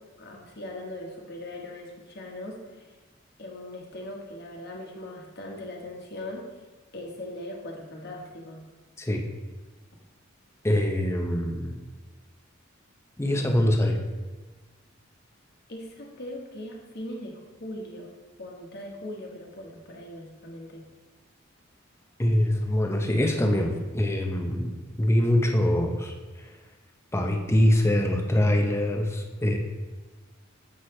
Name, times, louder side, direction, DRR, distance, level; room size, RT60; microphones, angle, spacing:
voice 1, 0.2-2.9 3.4-6.4 6.9-8.6 15.7-18.1 18.4-20.9, left 1 dB, 55° left, 0 dB, 1.2 m, -40 dB
voice 2, 10.6-11.8 13.2-14.0 22.2-26.5 27.1-29.6, left 1 dB, 15° left, 3 dB, 0.6 m, -24 dB
7.8 x 5.9 x 3.2 m, 1.3 s
head